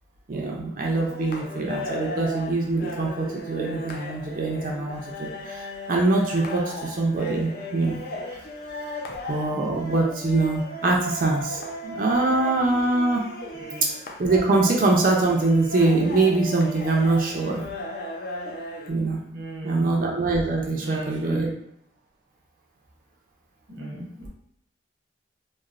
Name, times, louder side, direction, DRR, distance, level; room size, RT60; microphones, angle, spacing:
voice 1, 0.3-8.0 9.3-13.2 13.8-13.9 14.2-17.6 18.9-19.2 19.6-21.5, right 3 dB, 45° right, -1 dB, 0.4 m, -23 dB
sound 1, 0.9-18.9, left 1 dB, 50° left, 0.4 m, -36 dB
voice 2, 19.3-19.9 20.8-21.5 23.7-24.1, right 1 dB, 80° right, -3 dB, 0.9 m, -35 dB
3.0 x 2.0 x 2.4 m, 0.73 s
head